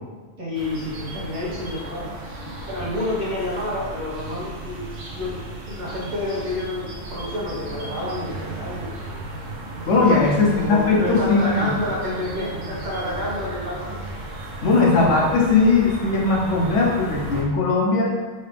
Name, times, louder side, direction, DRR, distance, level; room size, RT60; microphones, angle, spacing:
voice 1, 0.4-2.1 2.7-4.8 5.1-5.4 5.7-9.0 10.4-14.0, left 1 dB, 40° right, -7 dB, 1.2 m, -29 dB
sound 1, 0.5-17.4, right 2 dB, 90° right, 1.1 m, -35 dB
voice 2, 9.9-11.7 14.6-18.1, left 3 dB, 80° left, -3 dB, 1.2 m, -19 dB
4.3 x 2.9 x 3.3 m, 1.3 s
omnidirectional pair, 1.2 m